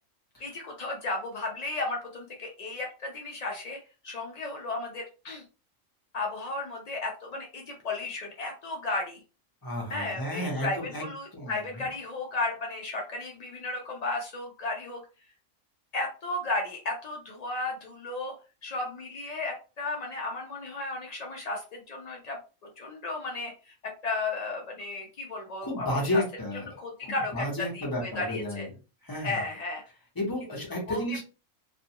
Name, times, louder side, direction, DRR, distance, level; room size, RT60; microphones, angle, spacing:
voice 1, 0.4-5.4 6.1-9.2 9.9-15.0 15.9-18.3 18.6-22.4 22.8-26.2 26.8-28.7 29.2-29.8 30.9-31.2, left 2 dB, 75° left, 0 dB, 0.3 m, -34 dB
voice 2, 9.6-11.9 25.6-28.7 29.0-29.4 30.2-31.2, left 1 dB, 20° left, -2 dB, 0.8 m, -32 dB
2.5 x 2.2 x 2.8 m, 0.33 s
omnidirectional pair, 1.4 m